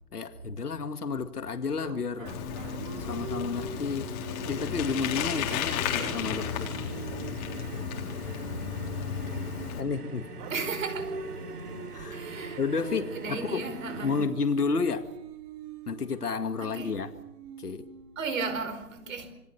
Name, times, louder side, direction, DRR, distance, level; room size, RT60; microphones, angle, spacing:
voice 1, 0.1-2.3 3.0-4.1 4.5-6.8 9.8-10.3 11.9-12.3 12.6-13.7 14.0-15.1 15.9-17.1 17.6-17.9, left 5 dB, 90° left, 2.1 m, -31 dB
sound 1, 1.8-9.8 10.4-18.5, right 5 dB, 20° right, 2.1 m, -44 dB
Bicycle, 2.3-9.8, left 8 dB, 25° left, 3.8 m, -33 dB
sound 2, 4.3-14.3, right 3 dB, 85° right, 4.4 m, -43 dB
voice 2, 10.5-11.1 12.1-14.2 16.6-16.9 18.2-19.3, right 4 dB, 60° right, 4.9 m, -35 dB
27.5 x 23.5 x 6.9 m
hypercardioid pair, 150°, 45 cm